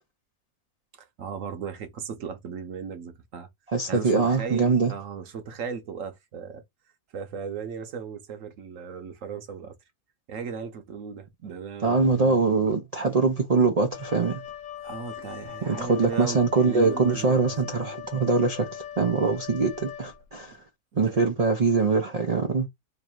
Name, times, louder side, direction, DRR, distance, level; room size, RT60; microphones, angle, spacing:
voice 1, 0.9-3.5 3.9-6.6 7.1-9.8 10.3-12.7 14.8-17.4 20.9-21.3, right 6 dB, 65° right, 1.0 m, -37 dB
voice 2, 3.7-4.9 11.8-14.4 15.7-20.6 21.0-22.7, right 4 dB, 80° right, 0.3 m, -23 dB
Wind instrument woodwind instrument, 13.9-20.5, left 10 dB, 70° left, 0.8 m, -40 dB
3.1 x 2.5 x 4.4 m
omnidirectional pair, 1.6 m